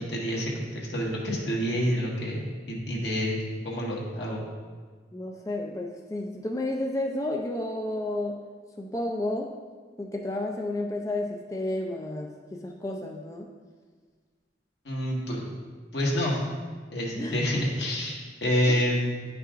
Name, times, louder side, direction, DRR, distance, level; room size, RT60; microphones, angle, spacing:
voice 1, 0.0-3.4 3.6-4.4 14.8-15.5 15.9-16.4 16.9-19.1, equal, 75° left, -4 dB, 1.6 m, -28 dB
voice 2, 5.1-8.4 8.8-9.5 10.0-13.5 17.1-17.4 18.7-18.8, left 1 dB, 20° left, 1 dB, 0.4 m, -31 dB
10.0 x 5.5 x 2.5 m, 1.5 s
head